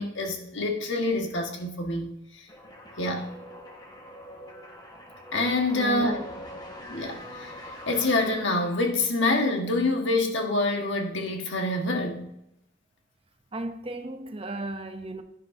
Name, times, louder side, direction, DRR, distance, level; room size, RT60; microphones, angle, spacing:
voice 1, 0.0-2.1 3.0-3.3 5.3-6.1 6.9-12.3, left 2 dB, 65° left, 1.5 m, -26 dB
sound 1, 2.5-9.2, equal, 20° left, 1.4 m, -44 dB
voice 2, 5.7-6.4 13.5-15.2, right 2 dB, 30° right, 0.6 m, -35 dB
11.0 x 10.0 x 2.7 m
head